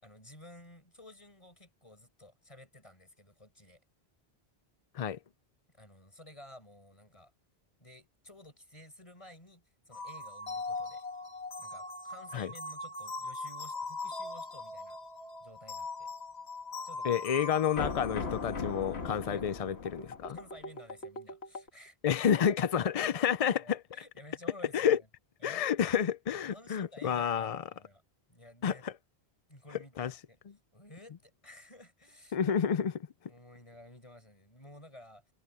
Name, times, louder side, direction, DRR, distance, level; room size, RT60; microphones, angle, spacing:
voice 1, 0.0-3.8 5.7-7.3 7.8-11.1 11.6-15.0 15.4-16.1 16.8-17.4 19.2-19.5 20.3-22.0 23.6-25.1 25.4-25.7 26.5-28.0 28.3-28.9 29.5-30.4 30.7-32.4 33.3-35.2, left 1 dB, 30° left, 5.1 m, -53 dB
sound 1, 9.9-21.7, left 3 dB, 85° left, 2.0 m, -40 dB
voice 2, 17.0-20.4 22.0-23.8 24.7-25.0 25.4-27.6 28.6-28.9 30.0-30.1 32.3-33.1, left 8 dB, 50° left, 0.4 m, -29 dB
omnidirectional pair, 1.1 m